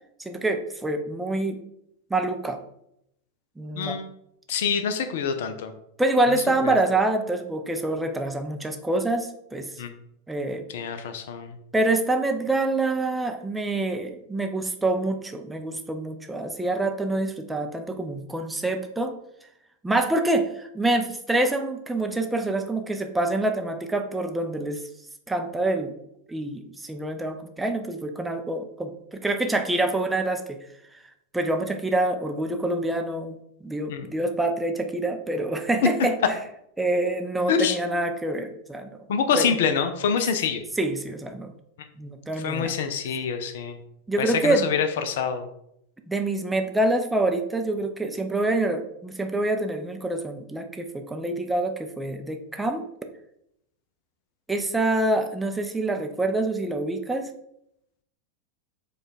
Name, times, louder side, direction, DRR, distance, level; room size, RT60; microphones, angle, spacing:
voice 1, 0.2-1.6 2.1-2.6 3.6-4.0 6.0-9.7 10.3-10.7 11.7-19.1 19.8-24.8 25.3-25.9 26.3-30.6 30.9-31.0 31.3-33.4 33.6-36.4 36.8-39.1 39.3-39.5 40.8-41.5 42.0-42.7 44.1-44.7 46.1-52.8 54.5-57.3, right 2 dB, 5° right, 5 dB, 0.4 m, -26 dB
voice 2, 3.8-4.1 4.5-5.7 6.6-6.8 9.8-9.9 10.7-11.5 33.9-34.1 35.8-35.9 37.5-37.8 39.1-40.6 41.8-41.9 42.4-43.8 44.2-45.5, left 6 dB, 55° left, 9 dB, 0.4 m, -26 dB
4.8 x 2.3 x 4.1 m, 0.78 s
figure-of-eight pair, 90°, 0 cm